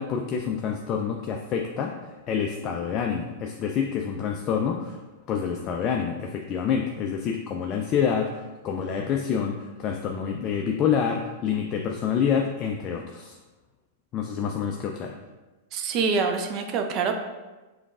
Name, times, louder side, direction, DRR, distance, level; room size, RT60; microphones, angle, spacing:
voice 1, 0.0-5.0 5.3-13.4 14.1-15.2, left 7 dB, 35° left, 2 dB, 0.3 m, -27 dB
voice 2, 15.7-17.1, right 5 dB, 40° right, 5 dB, 0.5 m, -25 dB
5.0 x 3.2 x 2.4 m, 1.2 s
figure-of-eight pair, 100°, 0 cm